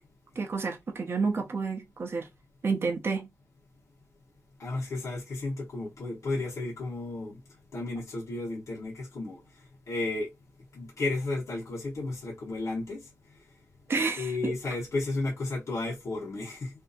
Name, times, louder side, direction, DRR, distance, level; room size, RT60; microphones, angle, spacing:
voice 1, 0.4-2.3 2.6-3.3 13.9-14.5, right 4 dB, 50° right, 0.6 m, -30 dB
voice 2, 4.6-7.4 7.7-9.4 9.9-10.3 10.7-13.0 14.2-16.7, left 2 dB, 75° left, 1.0 m, -33 dB
2.6 x 2.6 x 2.3 m
wide cardioid pair, 120°, 5 cm